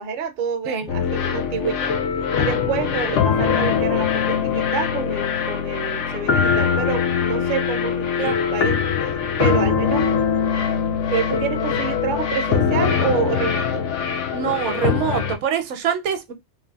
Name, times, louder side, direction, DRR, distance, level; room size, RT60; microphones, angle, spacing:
voice 1, 0.0-1.9 2.3-8.8 9.4-10.1 11.1-13.8, right 6 dB, 60° right, 0.5 m, -27 dB
sound 1, 0.9-15.4, left 7 dB, 75° left, 0.9 m, -22 dB
voice 2, 14.3-16.3, right 8 dB, 75° right, 0.9 m, -24 dB
3.2 x 2.0 x 2.2 m
omnidirectional pair, 1.2 m